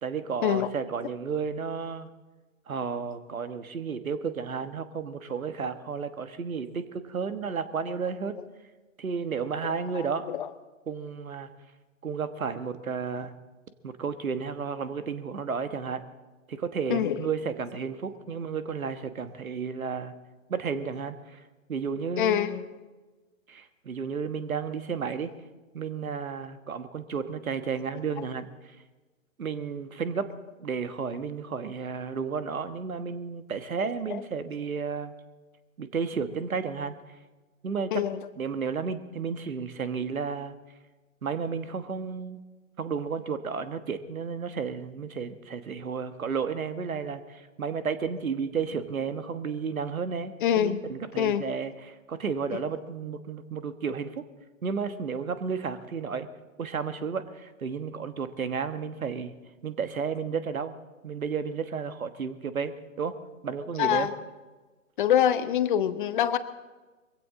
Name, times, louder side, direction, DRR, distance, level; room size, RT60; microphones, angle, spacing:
voice 1, 0.0-2.1 2.7-8.4 9.0-10.3 10.9-11.5 12.0-13.3 13.8-16.0 16.5-20.1 20.5-21.4 21.7-22.5 23.5-25.3 25.7-28.5 29.4-30.3 30.6-35.1 35.8-37.0 37.6-38.0 38.4-40.5 41.2-42.4 42.8-54.2 54.6-56.3 56.6-59.3 59.6-60.7 61.0-63.2 63.4-64.1, right 6 dB, 80° right, 11 dB, 1.5 m, -32 dB
voice 2, 9.9-10.5 16.9-17.3 22.2-22.7 34.1-34.2 37.9-38.2 50.4-50.8 51.2-51.4 52.5-52.6 63.8-64.1 65.0-66.4, left 10 dB, 35° left, 12 dB, 0.9 m, -25 dB
21.5 x 16.0 x 3.8 m, 1.2 s
hypercardioid pair, 140°, 41 cm